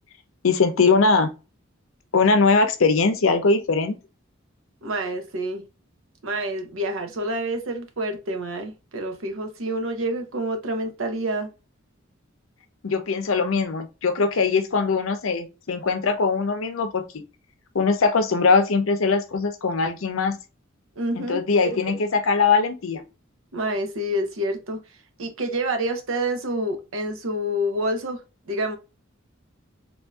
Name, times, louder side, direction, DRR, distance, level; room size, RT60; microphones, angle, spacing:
voice 1, 0.4-1.3 2.1-4.0 12.8-17.0 17.7-20.4 21.1-23.0, left 4 dB, 90° left, 0.6 m, -21 dB
voice 2, 4.8-5.7 6.2-11.5 21.0-21.4 23.5-24.8 25.2-28.2 28.5-28.8, right 1 dB, 85° right, 0.8 m, -27 dB
3.5 x 2.6 x 2.3 m
head